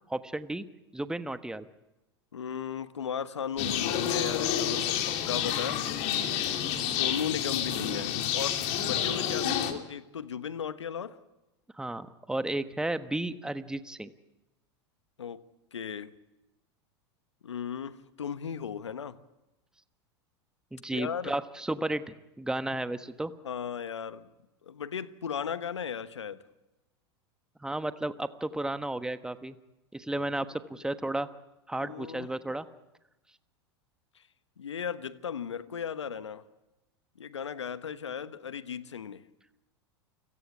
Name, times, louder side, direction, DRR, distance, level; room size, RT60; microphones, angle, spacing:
voice 1, 0.1-0.6 0.9-1.7 11.8-14.1 20.7-23.3 27.6-29.6 29.9-31.3 31.7-32.7, right 1 dB, 5° right, 1.2 m, -33 dB
voice 2, 2.3-5.8 6.7-11.2 15.2-15.4 15.7-16.1 17.4-19.2 20.9-21.3 23.4-24.3 24.6-26.4 31.8-32.3 34.6-36.4 37.2-39.2, left 7 dB, 90° left, 1.1 m, -36 dB
sound 1, 3.6-9.7, left 9 dB, 50° left, 2.9 m, -29 dB
29.0 x 17.5 x 8.4 m
hypercardioid pair, 95°, 14 cm